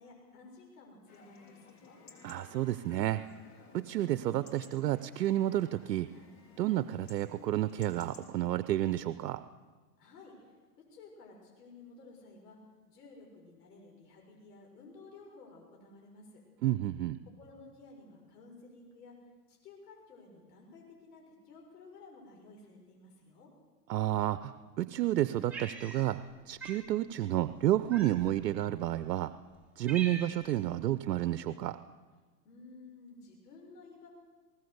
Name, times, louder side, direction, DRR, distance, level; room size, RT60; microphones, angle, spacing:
voice 1, 0.0-2.0 10.0-12.6 12.9-16.4 17.4-19.1 19.5-23.5 32.4-34.1, left 3 dB, 70° left, 0 dB, 6.5 m, -54 dB
Chatter / Livestock farm animals working animals / Chirp tweet, 1.1-8.3, left 4 dB, 35° left, 4.1 m, -57 dB
voice 2, 2.2-3.2 3.7-6.1 6.6-9.4 16.6-17.2 23.9-29.3 29.8-31.8, right 13 dB, 80° right, 13 dB, 0.9 m, -31 dB
Cat, 25.5-26.3 26.6-26.8 27.9-28.4 29.1-29.2 29.5-30.6, right 4 dB, 5° right, 5.1 m, -43 dB
20.5 x 19.0 x 8.1 m, 1.3 s
hypercardioid pair, 120°, 48 cm